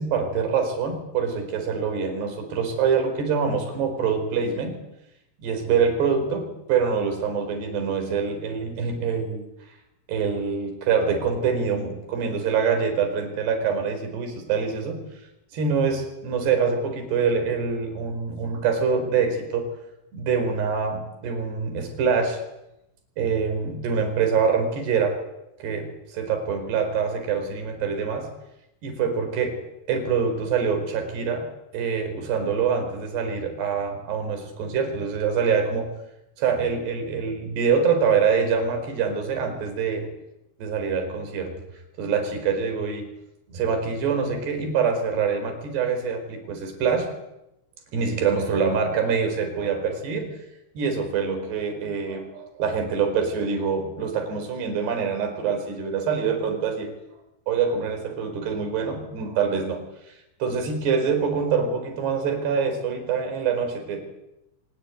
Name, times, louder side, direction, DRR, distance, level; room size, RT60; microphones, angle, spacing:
voice 1, 0.0-4.8 5.4-9.5 10.1-15.0 15.5-19.7 20.1-22.4 23.2-25.2 25.6-28.3 28.8-29.5 29.9-31.5 31.7-35.9 36.4-40.1 40.6-41.5 42.0-43.1 43.5-47.1 47.9-50.4 50.7-56.9 57.5-59.8 60.4-64.0, right 6 dB, 55° right, 5 dB, 6.7 m, -25 dB
24.5 x 21.0 x 9.5 m, 0.87 s
omnidirectional pair, 5.8 m